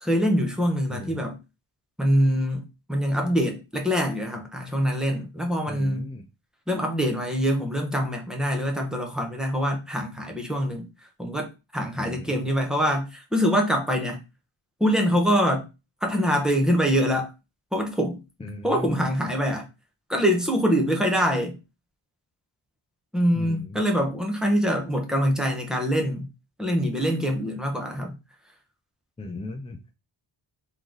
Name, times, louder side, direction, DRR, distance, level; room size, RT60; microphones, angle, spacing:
voice 1, 0.0-1.4 2.0-2.6 2.9-6.1 6.7-10.9 11.2-14.2 14.8-15.6 16.0-17.3 17.7-18.2 18.6-19.7 20.1-21.6 23.1-26.3 26.6-28.1, equal, ahead, 1.0 m, -24 dB
voice 2, 0.9-1.2 5.7-6.3 12.0-12.4 18.4-19.0 23.3-23.8 29.2-29.9, left 2 dB, 15° left, 0.3 m, -37 dB
3.8 x 3.1 x 3.8 m
wide cardioid pair, 120°, 48 cm